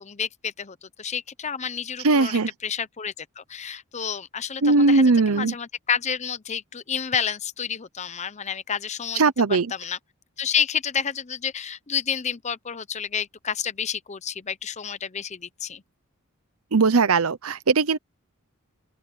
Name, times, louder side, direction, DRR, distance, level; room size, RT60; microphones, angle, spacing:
voice 1, 0.0-10.0 10.4-15.8, left 7 dB, 35° left, 0.7 m, -30 dB
voice 2, 2.0-2.5 4.6-5.5 9.2-9.7 16.7-18.0, right 3 dB, 80° right, 0.8 m, -19 dB
open air
head